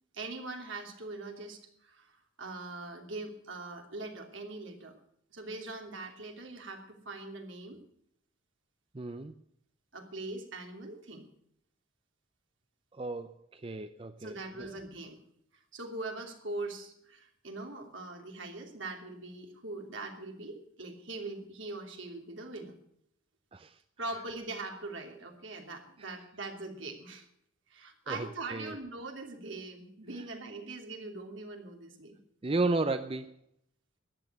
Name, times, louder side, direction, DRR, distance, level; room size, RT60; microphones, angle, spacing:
voice 1, 0.1-5.0 5.3-7.8 9.9-11.3 14.2-15.2 15.7-22.7 24.0-27.3 27.7-32.2, right 2 dB, 70° right, 3 dB, 3.0 m, -42 dB
voice 2, 8.9-9.3 12.9-14.7 23.5-23.8 26.0-26.2 28.1-28.8 32.4-33.3, right 3 dB, 25° right, 10 dB, 0.5 m, -34 dB
13.5 x 10.0 x 8.0 m, 0.72 s
head